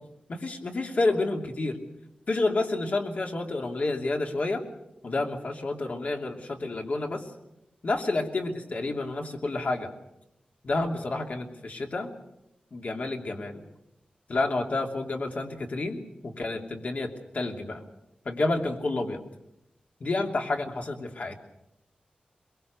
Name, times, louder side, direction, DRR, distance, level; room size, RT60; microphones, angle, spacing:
voice 1, 0.3-1.8 2.3-4.6 5.0-7.2 7.8-9.9 10.6-12.1 12.7-13.6 14.3-17.8 18.2-19.2 20.0-21.3, left 2 dB, 60° left, 3 dB, 2.9 m, -29 dB
23.0 x 22.5 x 6.8 m, 0.85 s
wide cardioid pair, 105°, 3 cm